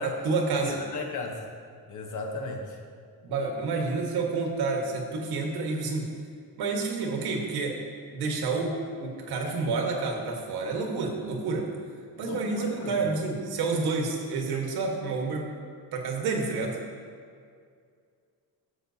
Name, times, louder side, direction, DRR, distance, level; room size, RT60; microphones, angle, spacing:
voice 1, 0.0-0.8 3.2-6.1 6.6-7.8 8.1-11.7 12.2-15.5 15.9-16.8, right 4 dB, 80° right, 1 dB, 1.5 m, -29 dB
voice 2, 0.6-1.4 1.9-2.8 12.2-13.0, left 3 dB, 50° left, 2 dB, 1.1 m, -35 dB
11.5 x 7.3 x 2.8 m, 2.2 s
cardioid pair, 155°, 38 cm